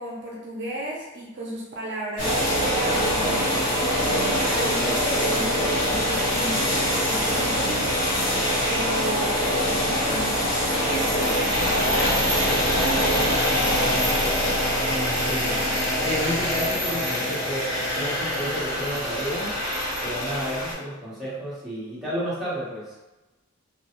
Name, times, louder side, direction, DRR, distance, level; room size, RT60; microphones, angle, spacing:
voice 1, 0.0-3.9 4.2-8.2 8.6-14.2, right 1 dB, 55° right, -4 dB, 0.5 m, -34 dB
sound 1, 2.2-20.7, equal, 50° left, 1.4 m, -24 dB
voice 2, 14.9-15.7 16.0-19.5 20.0-22.9, equal, ahead, -11 dB, 1.0 m, -31 dB
2.4 x 2.3 x 2.9 m, 1.1 s
head